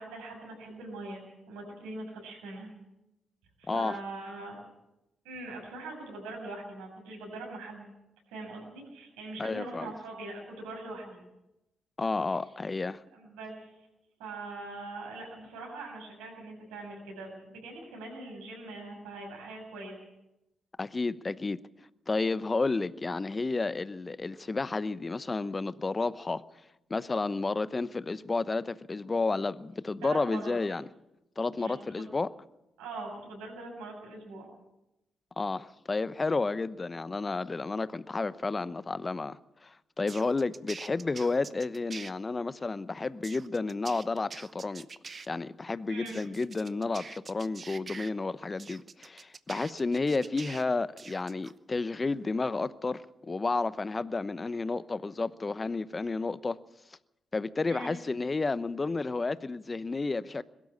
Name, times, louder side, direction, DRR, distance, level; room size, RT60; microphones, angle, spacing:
voice 1, 0.0-2.7 3.6-4.6 5.2-7.9 8.3-11.2 13.1-13.7 14.2-20.0 30.0-30.6 31.6-32.1 32.8-34.5 45.9-46.2 57.7-58.0, right 2 dB, 80° right, 7.2 m, -42 dB
voice 2, 3.7-4.0 9.4-9.9 12.0-13.0 20.8-21.6 22.1-26.4 26.9-30.8 31.4-32.3 35.4-44.9 45.3-56.6 57.3-60.4, left 3 dB, 35° left, 0.9 m, -31 dB
sound 1, 40.1-42.1 43.2-45.3 46.1-48.1 48.6-50.6 51.0-51.5, right 5 dB, 45° right, 0.9 m, -45 dB
22.0 x 12.5 x 9.7 m
hypercardioid pair, 40°, 0 cm